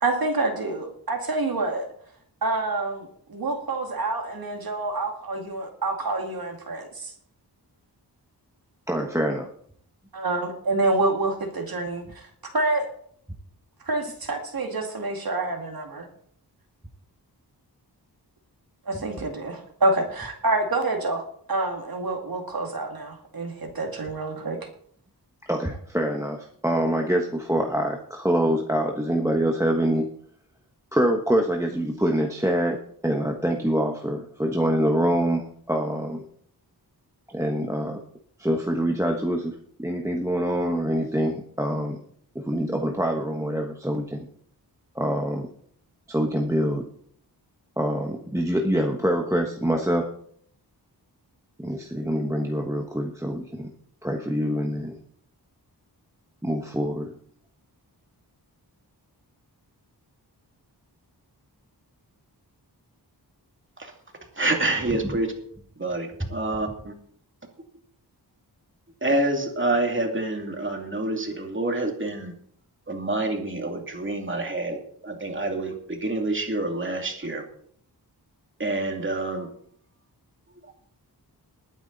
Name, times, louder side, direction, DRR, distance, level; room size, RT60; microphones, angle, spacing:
voice 1, 0.0-1.9 2.4-7.1 10.1-12.9 13.9-16.1 18.9-24.6, right 2 dB, 60° right, 2 dB, 2.3 m, -27 dB
voice 2, 8.9-9.5 25.5-30.1 30.9-36.3 37.3-38.0 38.4-42.0 42.3-44.3 44.9-45.5 46.1-46.8 47.8-50.1 51.6-53.7 54.0-55.0 56.4-57.1 64.9-65.2 66.2-66.3, equal, 5° right, 2 dB, 1.2 m, -25 dB
voice 3, 64.4-65.3 65.8-66.9 69.0-72.3 72.9-74.8 75.0-77.4 78.6-79.5, right 2 dB, 30° right, 3 dB, 2.5 m, -27 dB
20.0 x 9.2 x 4.0 m, 0.63 s
wide cardioid pair, 125°, 40 cm